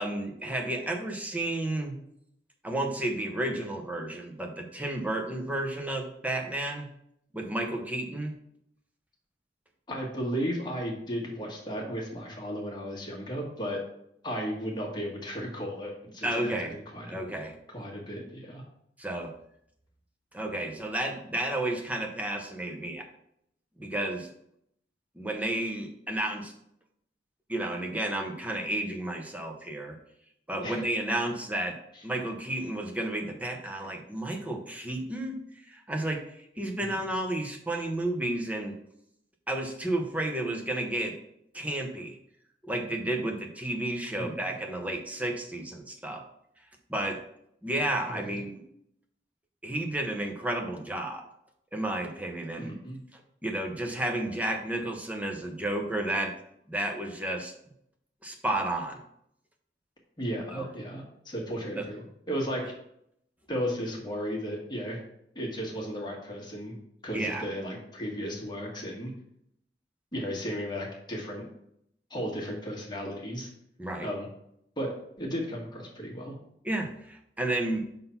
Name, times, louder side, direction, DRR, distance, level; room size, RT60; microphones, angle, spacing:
voice 1, 0.0-2.0 2.6-6.9 7.3-8.3 16.2-16.7 17.1-17.6 19.0-19.3 20.3-23.1 23.8-24.3 25.2-26.5 27.5-30.0 30.5-31.8 32.0-35.4 35.7-36.2 36.6-38.8 39.5-41.1 41.5-42.2 42.6-46.2 46.9-47.2 47.6-48.6 49.6-51.3 51.7-52.7 53.1-56.3 56.7-57.5 58.2-59.0 60.5-60.7 61.8-61.9 67.1-67.4 73.8-74.1 76.6-77.8, right 1 dB, 10° right, 2 dB, 0.8 m, -32 dB
voice 2, 9.9-13.8 14.2-17.2 17.7-18.6 30.6-30.8 31.9-32.0 44.2-44.4 48.1-48.4 52.6-53.0 60.2-62.7 63.5-65.0 65.3-66.7 67.0-69.1 70.1-71.4 72.1-73.5 74.0-74.3 74.8-74.9 75.2-76.3, equal, 25° left, -1 dB, 1.5 m, -35 dB
5.5 x 3.8 x 5.7 m, 0.74 s
head